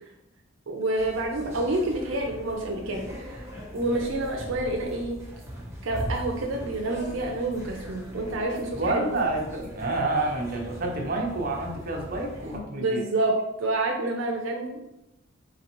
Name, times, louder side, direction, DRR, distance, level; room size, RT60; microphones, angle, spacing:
voice 1, 0.7-3.5 3.7-5.2 5.8-9.1 12.5-13.3 13.6-14.9, right 2 dB, 75° right, 1 dB, 0.6 m, -28 dB
sound 1, 1.0-12.6, equal, 15° right, 0.9 m, -40 dB
voice 2, 8.7-13.0, right 2 dB, 45° right, 0 dB, 0.8 m, -28 dB
4.0 x 3.9 x 3.0 m, 0.88 s
head